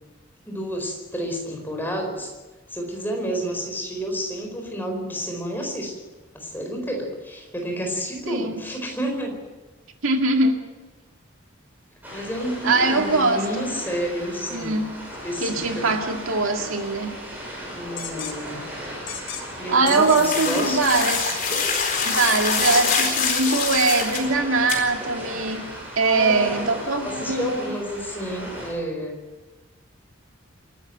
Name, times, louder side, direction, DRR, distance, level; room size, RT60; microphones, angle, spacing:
voice 1, 0.5-2.3 2.7-5.9 6.3-9.4 12.1-14.8 15.2-15.9 17.7-18.5 19.6-20.8 26.0-29.2, equal, 10° left, 2 dB, 4.5 m, -30 dB
voice 2, 8.3-8.6 10.0-10.6 12.6-13.7 14.5-14.9 15.4-17.1 19.7-21.4 22.0-25.6 26.0-27.7, right 3 dB, 80° right, 3 dB, 2.2 m, -22 dB
sound 1, 12.0-28.7, equal, 10° right, 7.2 m, -37 dB
sound 2, 18.0-18.3 19.1-19.4 19.9-20.2 20.9-21.4 21.7-22.2 22.5-23.0 23.5-23.8, left 8 dB, 65° left, 3.8 m, -34 dB
sound 3, 19.9-24.2 24.7-24.8, left 5 dB, 40° left, 4.2 m, -25 dB
27.0 x 13.0 x 7.9 m, 1.2 s
head